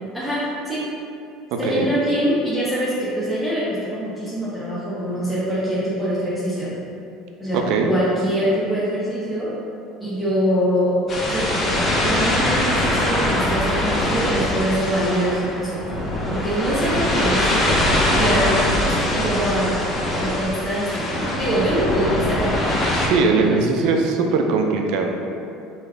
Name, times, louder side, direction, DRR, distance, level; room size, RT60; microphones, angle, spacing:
voice 1, 0.1-0.8 1.6-6.7 7.4-9.5 10.0-11.0 11.3-15.8 16.3-17.8 18.1-19.7 20.2-22.5 23.1-24.0, equal, ahead, -11 dB, 0.9 m, -24 dB
voice 2, 1.5-1.9 7.5-7.9 22.9-25.2, right 4 dB, 65° right, 3 dB, 0.4 m, -20 dB
sound 1, 11.1-23.1, left 1 dB, 35° left, 0.6 m, -22 dB
3.3 x 2.3 x 3.3 m, 2.5 s
hypercardioid pair, 70°, 0 cm